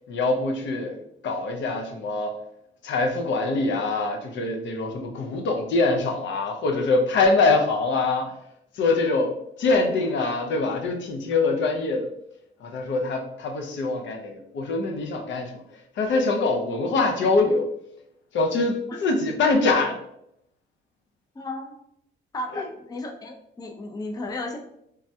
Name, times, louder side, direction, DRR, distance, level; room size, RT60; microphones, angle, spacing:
voice 1, 0.1-1.0 1.2-2.4 2.8-8.3 8.7-12.1 12.6-15.6 16.0-17.7 18.3-20.0 22.5-22.6, left 3 dB, 70° left, 3 dB, 0.5 m, -24 dB
voice 2, 21.4-21.7 22.3-24.6, left 2 dB, 20° left, 3 dB, 0.4 m, -34 dB
3.3 x 2.2 x 2.7 m, 0.77 s
cardioid pair, 90°, 20 cm